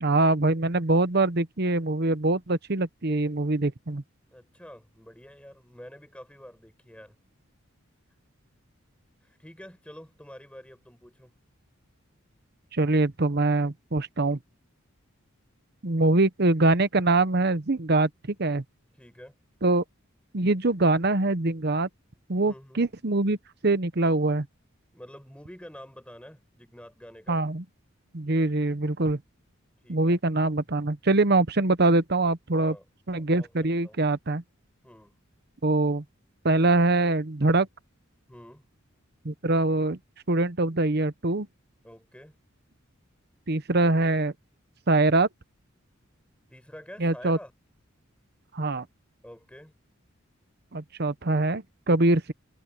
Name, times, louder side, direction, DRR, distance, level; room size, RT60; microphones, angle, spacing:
voice 1, 0.0-4.0 12.7-14.4 15.8-18.1 18.4-18.6 19.6-19.8 20.3-21.9 22.3-23.4 23.6-24.5 27.3-27.6 28.1-29.2 29.9-32.7 33.1-34.4 35.6-36.0 36.4-37.7 39.2-40.0 40.3-41.5 43.5-44.3 44.9-45.3 47.0-47.4 48.5-48.8 50.7-52.3, right 2 dB, 50° right, 1.0 m, -23 dB
voice 2, 4.3-7.1 9.2-11.3 19.0-19.3 22.4-22.8 24.9-27.4 29.8-30.2 32.5-32.8 33.1-34.0 34.8-35.2 38.3-38.6 41.8-42.4 46.5-47.5 49.2-49.7, equal, 5° left, 5.1 m, -47 dB
head